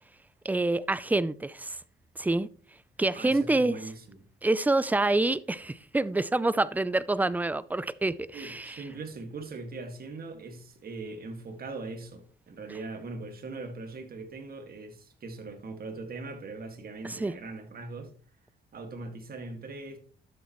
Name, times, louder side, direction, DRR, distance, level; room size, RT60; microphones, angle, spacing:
voice 1, 0.4-1.8 2.2-2.5 3.0-3.8 4.4-8.8 17.0-17.3, right 2 dB, 10° right, 0.4 m, -27 dB
voice 2, 3.1-4.3 8.3-18.1 18.7-20.0, right 3 dB, 50° right, 2.0 m, -40 dB
12.0 x 7.1 x 3.1 m
cardioid pair, 90°, 20 cm